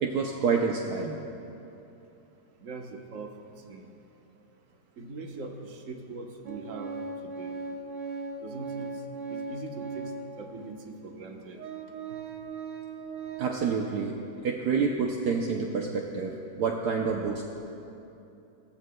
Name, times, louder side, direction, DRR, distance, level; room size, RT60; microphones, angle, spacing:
voice 1, 0.0-1.2 13.4-14.1 14.4-17.5, right 5 dB, 70° right, 1 dB, 1.2 m, -28 dB
voice 2, 2.6-3.3 3.7-3.9 5.0-6.9 7.2-7.6 8.4-8.9 9.3-10.1 10.4-11.6, right 3 dB, 50° right, 2 dB, 1.3 m, -41 dB
Organ, 6.5-10.4 11.1-11.2 11.6-13.7, right 4 dB, 90° right, 1.5 m, -38 dB
17.5 x 14.0 x 2.2 m, 2.8 s
omnidirectional pair, 1.9 m